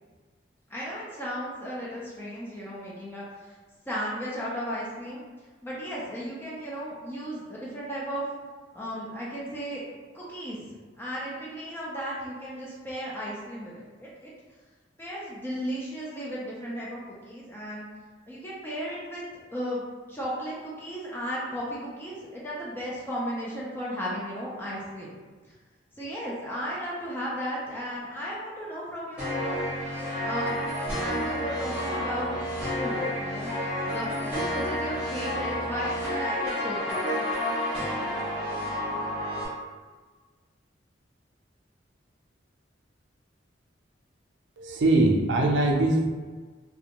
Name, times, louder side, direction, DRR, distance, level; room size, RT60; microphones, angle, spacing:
voice 1, 0.7-3.5 3.9-5.2 5.6-8.2 8.7-9.8 10.1-10.6 11.0-14.3 15.0-17.8 18.3-19.2 19.5-19.8 20.1-25.2 25.4-25.6 26.0-29.6 30.2-30.6 31.0-32.4 32.8-33.5 33.9-37.2, equal, 10° left, -6 dB, 0.4 m, -35 dB
sound 1, 29.2-39.5, equal, 10° right, 1.1 m, -30 dB
voice 2, 44.6-46.1, right 2 dB, 65° right, 1 dB, 0.4 m, -22 dB
2.4 x 2.2 x 2.8 m, 1.4 s
head